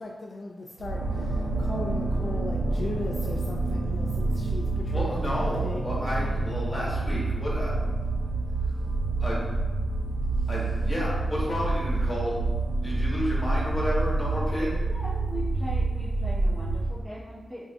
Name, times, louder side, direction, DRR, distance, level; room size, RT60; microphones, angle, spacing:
voice 1, 0.0-6.3, left 2 dB, 50° left, -1 dB, 0.3 m, -38 dB
sound 1, 0.8-17.0, right 2 dB, 85° right, 0.5 m, -28 dB
voice 2, 4.9-7.7 9.2-9.4 10.5-12.4 12.8-14.7, equal, 20° left, -6 dB, 1.4 m, -31 dB
voice 3, 14.8-17.7, equal, 15° right, -9 dB, 1.3 m, -40 dB
4.5 x 2.6 x 2.4 m, 1.3 s
wide cardioid pair, 95°, 0 cm